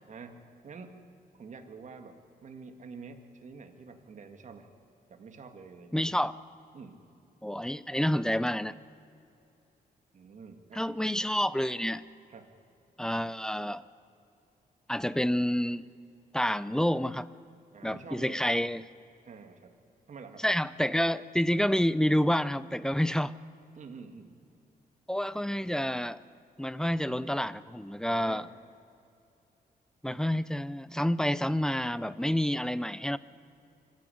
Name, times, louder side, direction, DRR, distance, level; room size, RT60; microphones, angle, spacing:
voice 1, 0.1-1.0 1.3-4.7 5.1-6.0 6.7-7.0 10.1-10.9 12.3-12.5 17.7-18.4 19.2-19.7 20.1-20.4 23.7-24.4 28.0-28.5, right 5 dB, 50° right, 6 dB, 1.9 m, -47 dB
voice 2, 5.9-6.3 7.4-8.8 10.7-12.0 13.0-13.8 14.9-15.9 16.3-17.3 17.8-18.8 20.4-23.3 25.1-26.2 26.6-28.5 30.0-33.2, equal, 5° left, 17 dB, 0.4 m, -28 dB
25.0 x 13.5 x 10.0 m, 2.6 s
wide cardioid pair, 135°, 16 cm